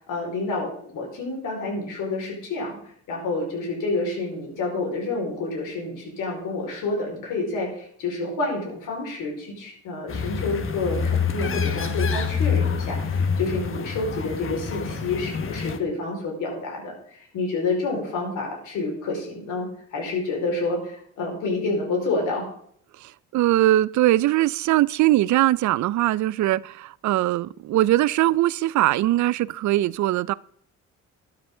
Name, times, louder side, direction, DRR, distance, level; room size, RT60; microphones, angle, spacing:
voice 1, 0.0-22.5, left 3 dB, 85° left, 4.8 m, -29 dB
sound 1, 10.1-15.8, left 6 dB, 45° left, 1.3 m, -26 dB
voice 2, 23.0-30.3, right 15 dB, 70° right, 0.5 m, -21 dB
12.0 x 10.5 x 3.8 m
cardioid pair, 90°, 30 cm